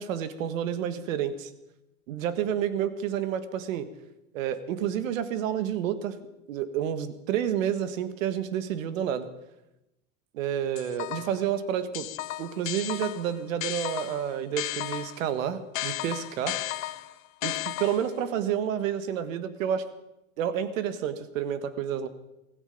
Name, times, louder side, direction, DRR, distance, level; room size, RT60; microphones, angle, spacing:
voice 1, 0.0-1.5 2.1-3.9 4.3-6.2 6.5-9.3 10.3-12.1 12.4-16.6 17.4-19.8 20.4-22.1, right 9 dB, 80° right, 13 dB, 1.5 m, -29 dB
sound 1, 10.8-11.5 11.9-15.3 15.7-18.2, left 17 dB, 80° left, 0.8 m, -34 dB
16.0 x 15.0 x 5.3 m, 0.90 s
supercardioid pair, 115°, 39 cm